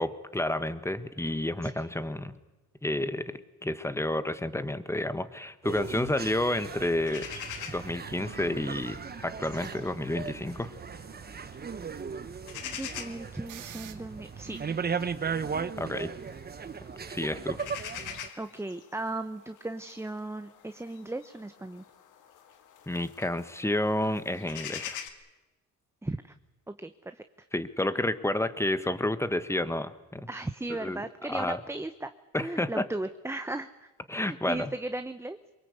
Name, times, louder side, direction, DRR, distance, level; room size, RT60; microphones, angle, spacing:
voice 1, 0.0-2.3 2.8-7.3 7.7-10.7 15.8-16.1 17.1-17.6 22.9-25.0 27.5-30.3 30.7-31.0 31.3-31.6 32.3-32.8 34.1-34.7, left 1 dB, 10° left, 12 dB, 1.4 m, -30 dB
sound 1, 5.6-18.3, right 6 dB, 30° right, 1.1 m, -37 dB
sound 2, 5.7-25.1, left 9 dB, 85° left, 2.0 m, -46 dB
sound 3, 8.1-13.9, right 11 dB, 80° right, 1.6 m, -51 dB
voice 2, 12.6-14.6 18.4-21.8 26.0-26.3 26.7-27.2 30.3-32.1 32.4-33.9 34.2-35.4, right 2 dB, 10° right, 9 dB, 0.9 m, -36 dB
23.5 x 22.0 x 8.3 m, 1.1 s
cardioid pair, 90°, 30 cm